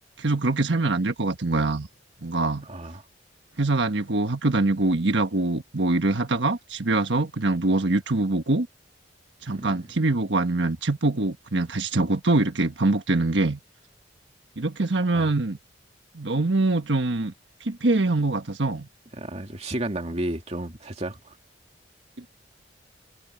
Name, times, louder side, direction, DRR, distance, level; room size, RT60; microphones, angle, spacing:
voice 1, 0.2-1.9 2.2-2.7 3.6-8.7 9.4-13.6 14.6-15.6 16.1-17.3 17.6-18.9 22.2-22.3, right 2 dB, 85° right, 1.3 m, -24 dB
voice 2, 2.7-3.0 9.5-9.7 15.1-15.3 19.1-21.3, right 1 dB, 35° right, 2.4 m, -32 dB
head